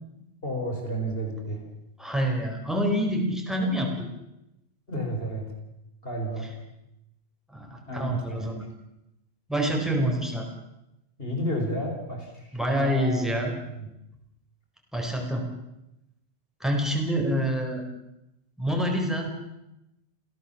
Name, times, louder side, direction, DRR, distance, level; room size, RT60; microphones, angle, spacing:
voice 1, 0.4-1.6 4.9-5.4 6.0-6.5 7.9-8.5 11.2-12.3 12.8-13.4 13.8-13.9, equal, 60° left, 2 dB, 5.5 m, -31 dB
voice 2, 2.0-4.1 6.4-6.5 7.5-8.6 9.5-10.5 12.5-13.6 14.9-15.4 16.6-17.8 18.6-19.3, equal, ahead, 1 dB, 4.5 m, -27 dB
28.0 x 17.0 x 7.3 m, 0.88 s
omnidirectional pair, 1.1 m